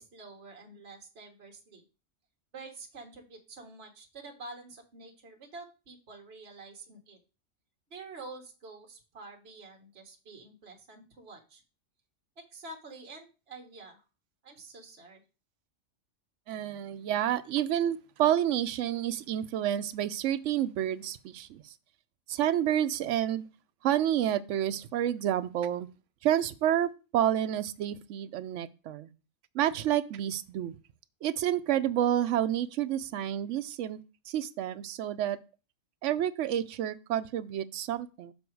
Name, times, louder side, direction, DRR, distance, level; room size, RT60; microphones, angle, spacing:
voice 1, 0.0-1.8 2.5-7.2 7.9-11.6 12.4-14.0 14.4-15.2, right 3 dB, 55° right, 2 dB, 1.6 m, -48 dB
voice 2, 16.5-21.7 22.3-23.4 23.8-25.9 26.2-29.1 29.5-30.7 31.2-34.0 34.3-35.4 36.0-38.3, right 11 dB, 75° right, 13 dB, 0.9 m, -29 dB
7.0 x 5.0 x 4.6 m, 0.32 s
omnidirectional pair, 1.3 m